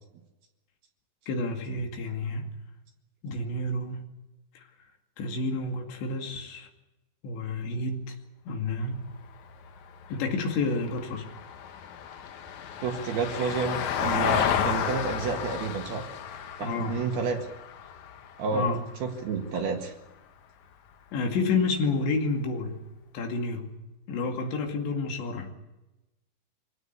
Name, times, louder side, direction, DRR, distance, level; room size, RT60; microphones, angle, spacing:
voice 1, 1.3-2.5 3.2-4.1 4.6-4.7 5.2-6.7 7.2-8.2 8.5-9.1 10.1-11.3 16.6-17.1 18.5-18.8 19.5-19.6 21.1-22.8 23.1-23.7 24.1-25.5, left 3 dB, 65° left, 4 dB, 4.5 m, -30 dB
Vehicle, 9.0-19.4 21.7-21.8, left 8 dB, 85° left, 1.6 m, -33 dB
voice 2, 12.8-16.0 16.6-17.4 18.4-18.7 19.0-19.9, right 5 dB, 60° right, 4 dB, 3.3 m, -30 dB
25.0 x 17.0 x 8.3 m, 1.0 s
omnidirectional pair, 5.5 m